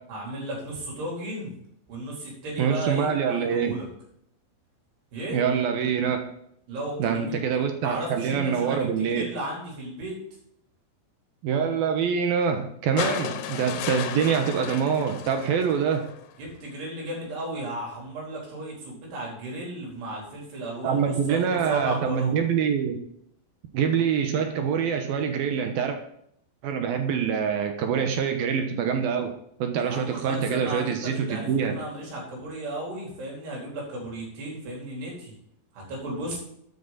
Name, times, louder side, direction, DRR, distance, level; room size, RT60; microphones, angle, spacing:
voice 1, 0.1-1.5 1.9-3.9 5.1-5.4 6.7-7.4 7.8-10.2 16.4-22.4 29.7-35.3 35.7-36.4, right 1 dB, 90° right, -3 dB, 6.1 m, -34 dB
voice 2, 2.6-3.7 5.3-6.2 7.0-9.3 11.4-16.1 20.8-23.0 23.7-26.0 26.6-29.3 29.6-31.7, right 7 dB, 70° right, 5 dB, 2.8 m, -25 dB
sound 1, 13.0-16.3 17.6-17.7, left 9 dB, 90° left, 3.1 m, -34 dB
13.0 x 9.5 x 4.2 m, 0.72 s
omnidirectional pair, 4.6 m